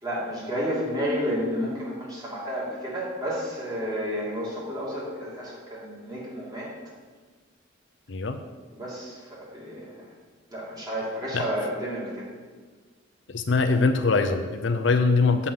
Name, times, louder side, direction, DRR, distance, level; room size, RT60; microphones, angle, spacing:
voice 1, 0.0-6.7 8.7-10.0 10.5-12.3, equal, 20° right, -6 dB, 2.7 m, -31 dB
voice 2, 13.3-15.5, left 4 dB, 65° left, 7 dB, 0.6 m, -22 dB
7.6 x 5.6 x 7.1 m, 1.4 s
head